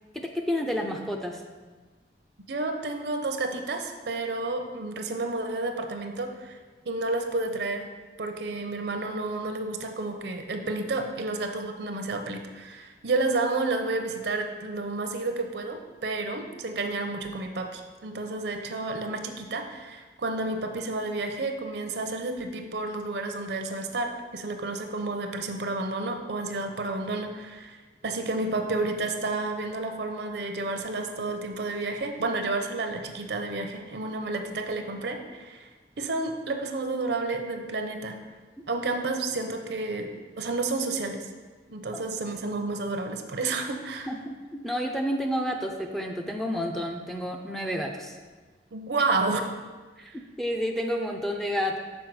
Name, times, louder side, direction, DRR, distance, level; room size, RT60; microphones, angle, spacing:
voice 1, 0.1-1.4 41.9-42.0 44.1-48.2 50.0-51.8, equal, ahead, 1 dB, 0.4 m, -30 dB
voice 2, 2.5-6.6 6.8-7.8 8.2-27.8 28.0-35.7 36.0-38.2 38.7-40.1 40.4-41.3 41.7-44.1 48.7-49.5 50.1-50.2, right 3 dB, 65° right, 5 dB, 0.6 m, -30 dB
6.2 x 4.5 x 4.7 m, 1.3 s
head